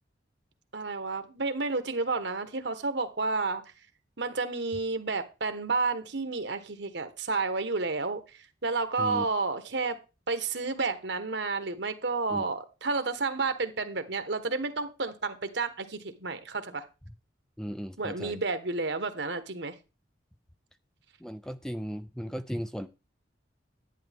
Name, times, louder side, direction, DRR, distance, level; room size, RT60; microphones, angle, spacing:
voice 1, 0.7-3.6 4.2-8.2 8.6-10.0 10.3-16.9 18.0-19.8, right 3 dB, 65° right, 1.4 m, -31 dB
voice 2, 17.6-18.4 21.2-22.9, equal, 5° left, 0.5 m, -36 dB
11.0 x 10.5 x 3.6 m
head